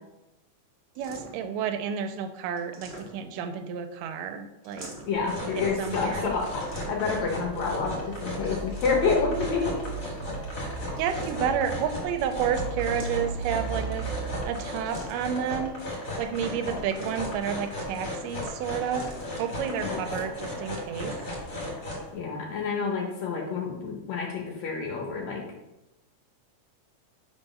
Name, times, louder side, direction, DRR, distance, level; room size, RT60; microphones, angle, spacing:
sound 1, 0.9-1.5 2.6-3.5 4.6-5.3 6.6-7.2 8.5-9.3 10.9-11.7 12.8-13.6 14.9-15.4 16.7-17.5 18.8-19.3, right 2 dB, 40° right, 0.8 m, -45 dB
voice 1, 1.0-4.9 5.6-6.4 10.2-10.3 11.0-14.1 14.5-15.7 16.2-19.1 19.4-21.1, right 8 dB, 85° right, 8 dB, 2.1 m, -30 dB
voice 2, 5.1-9.8 19.6-20.0 22.1-25.4, left 5 dB, 70° left, 1 dB, 1.9 m, -29 dB
sound 2, 5.1-22.1, left 1 dB, 35° left, 1.8 m, -35 dB
sound 3, 5.9-14.9, right 5 dB, 55° right, 1.3 m, -38 dB
5.1 x 4.5 x 5.4 m, 0.97 s
omnidirectional pair, 3.8 m